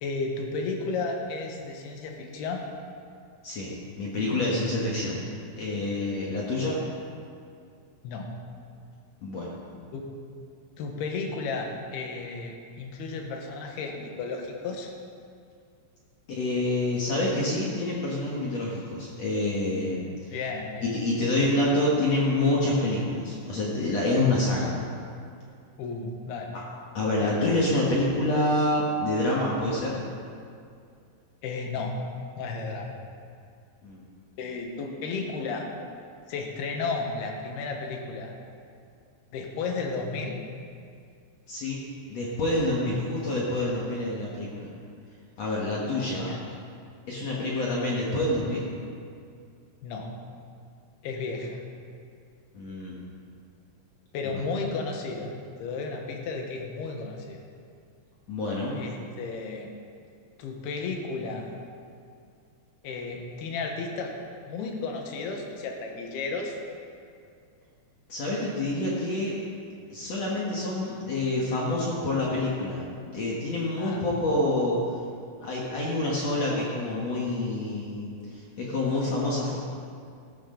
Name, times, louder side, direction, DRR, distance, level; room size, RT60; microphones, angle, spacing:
voice 1, 0.0-2.6 8.0-8.3 9.9-10.1 10.8-14.9 20.3-20.9 25.8-26.6 27.2-27.5 31.4-31.9 32.4-32.9 34.4-35.7 36.3-38.3 39.3-40.4 46.1-46.4 49.8-50.1 51.0-51.6 54.1-55.3 55.6-57.4 58.7-59.7 60.4-61.5 62.8-64.2 64.5-66.6 73.8-74.0, left 4 dB, 80° left, 2 dB, 3.3 m, -33 dB
voice 2, 3.4-5.2 5.6-6.8 9.2-9.5 16.3-20.4 20.8-24.8 26.9-30.0 33.8-34.0 41.5-41.8 42.1-44.7 45.4-46.3 47.1-48.7 52.5-53.0 54.3-54.4 58.3-58.8 68.1-69.4 69.9-74.8 75.4-79.6, left 2 dB, 50° left, -5 dB, 2.2 m, -27 dB
16.5 x 12.5 x 3.9 m, 2.3 s
omnidirectional pair, 4.7 m